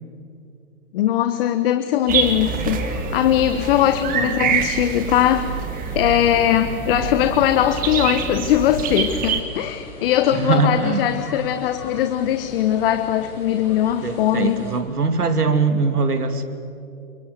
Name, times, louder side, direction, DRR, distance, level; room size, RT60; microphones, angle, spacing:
voice 1, 0.9-5.5 5.9-14.7, left 11 dB, 40° left, 9 dB, 1.3 m, -20 dB
sound 1, 2.0-14.8, left 2 dB, 80° left, 7.8 m, -40 dB
sound 2, 2.1-9.4, right 7 dB, 20° right, 2.0 m, -26 dB
voice 2, 4.2-4.6 7.0-7.1 10.3-11.0 14.0-16.4, right 4 dB, 85° right, 8 dB, 2.8 m, -21 dB
29.0 x 24.0 x 7.9 m, 2.6 s
hypercardioid pair, 130°, 45 cm